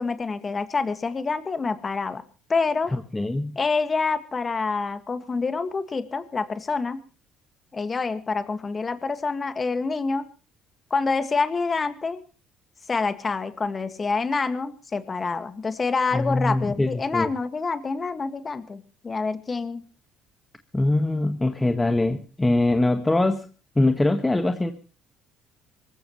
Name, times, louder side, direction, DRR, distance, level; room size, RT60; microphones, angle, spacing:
voice 1, 0.0-2.2 2.5-2.9 3.6-7.0 7.7-10.3 10.9-12.2 12.9-19.8, left 4 dB, 30° left, 10 dB, 1.9 m, -27 dB
voice 2, 2.9-3.6 16.1-17.3 20.7-23.5 23.8-24.7, left 2 dB, 15° left, 7 dB, 1.6 m, -23 dB
25.0 x 15.0 x 3.2 m, 0.35 s
cardioid pair, 100°, 0 cm